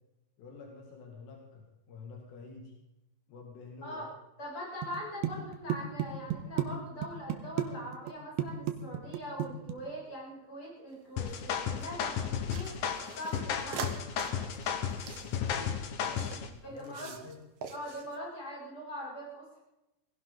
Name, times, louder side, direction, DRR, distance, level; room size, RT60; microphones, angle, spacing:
voice 1, 0.4-2.7 3.3-4.1 15.2-16.3 16.7-17.4, left 4 dB, 80° left, 1 dB, 4.3 m, -48 dB
voice 2, 4.4-12.7 13.1-13.9 16.1-16.2 16.6-17.1 17.7-19.6, equal, 30° left, -5 dB, 8.1 m, -42 dB
sound 1, 4.8-5.0 5.2-6.7 7.0-7.7 7.9-8.1 8.4-9.7, right 11 dB, 90° right, 3.4 m, -32 dB
sound 2, 10.9-11.9 12.5-16.4 16.8-17.4 17.6-18.2, right 6 dB, 60° right, 1.6 m, -44 dB
sound 3, 11.2-16.5, left 8 dB, 65° left, 2.2 m, -34 dB
20.5 x 16.5 x 4.0 m, 0.93 s
omnidirectional pair, 4.9 m